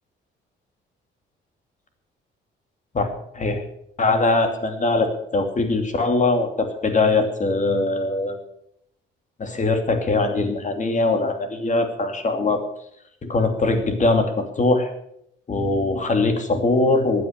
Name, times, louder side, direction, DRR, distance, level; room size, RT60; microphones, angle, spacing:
voice 1, 4.0-8.3 9.4-12.6 13.3-14.9 15.5-17.2, left 3 dB, 40° left, 6 dB, 2.8 m, -21 dB
15.5 x 9.6 x 6.7 m, 0.73 s
cardioid pair, 90°, 20 cm